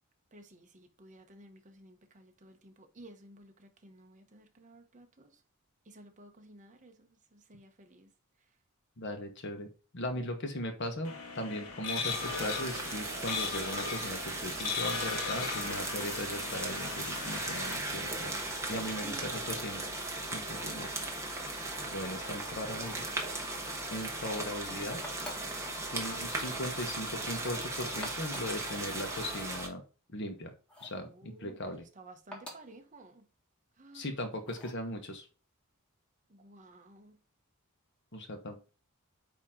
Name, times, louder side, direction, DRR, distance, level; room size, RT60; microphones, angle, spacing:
voice 1, 0.3-5.4 5.8-8.1 19.0-19.8 22.2-22.6 30.9-33.3 33.8-34.1 36.3-37.2, right 1 dB, 35° right, 1.0 m, -54 dB
voice 2, 9.0-18.3 18.7-19.8 20.3-20.9 21.8-23.0 23.9-25.0 25.9-29.8 30.1-30.5 30.8-31.8 33.9-35.3 38.1-38.7, left 1 dB, 55° left, 1.1 m, -38 dB
sound 1, 11.0-17.8, left 5 dB, 80° left, 1.4 m, -38 dB
sound 2, 12.1-29.7, right 2 dB, 15° right, 1.2 m, -37 dB
sound 3, 22.7-23.1 25.0-25.6 26.2-26.6 27.9-28.6 30.7-31.0 32.3-32.8 34.4-34.8, left 1 dB, 5° left, 1.6 m, -47 dB
8.7 x 3.0 x 3.7 m
head